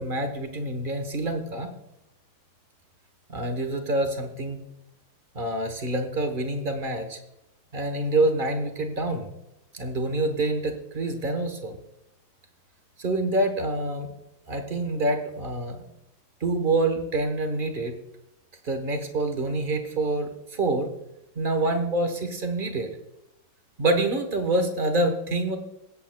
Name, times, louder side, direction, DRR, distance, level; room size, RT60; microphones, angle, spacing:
voice 1, 0.0-1.7 3.3-4.6 5.3-7.2 7.7-9.3 9.7-11.8 13.0-14.1 14.5-15.8 16.4-17.9 18.6-20.9 21.3-22.9 23.8-25.6, right 2 dB, 35° right, 6 dB, 0.9 m, -26 dB
22.5 x 8.5 x 2.3 m, 0.87 s
omnidirectional pair, 2.2 m